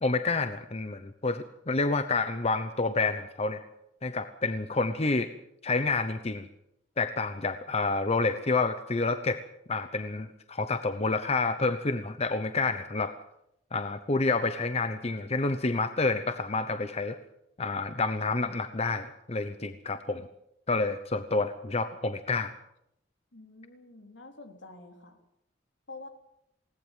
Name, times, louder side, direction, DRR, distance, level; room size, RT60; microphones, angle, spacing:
voice 1, 0.0-3.6 4.0-5.3 5.6-6.5 7.0-9.4 9.7-13.1 13.7-17.2 17.6-20.3 20.7-22.5, left 3 dB, 35° left, 10 dB, 0.9 m, -29 dB
voice 2, 23.3-25.2 25.9-26.1, left 2 dB, 75° left, 5 dB, 3.8 m, -47 dB
20.5 x 18.5 x 7.5 m, 0.77 s
head